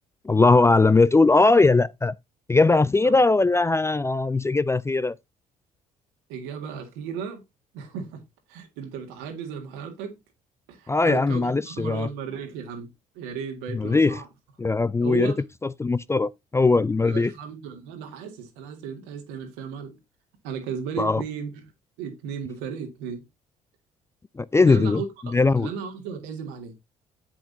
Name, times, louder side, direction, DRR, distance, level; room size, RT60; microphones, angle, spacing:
voice 1, 0.2-2.1 2.5-5.1 10.9-12.1 13.7-14.2 14.6-15.3 15.8-17.3 21.0-21.2 24.4-25.0 25.3-25.7, left 3 dB, 15° left, 0.3 m, -20 dB
voice 2, 6.3-7.4 7.7-8.2 8.5-10.2 10.7-12.9 13.2-14.3 15.0-15.4 17.0-20.0 20.4-21.6 22.0-23.2 24.6-26.7, right 7 dB, 75° right, 1.9 m, -35 dB
7.9 x 7.2 x 2.7 m
hypercardioid pair, 50°, 19 cm